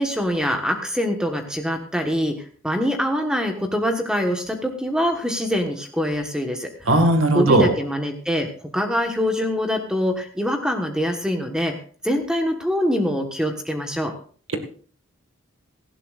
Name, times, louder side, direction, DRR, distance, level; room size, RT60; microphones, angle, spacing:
voice 1, 0.0-6.9 7.3-11.7 12.0-14.1, equal, 5° right, 4 dB, 1.3 m, -24 dB
voice 2, 6.9-7.7, right 2 dB, 75° right, 6 dB, 1.9 m, -17 dB
17.5 x 15.0 x 2.5 m, 0.43 s
head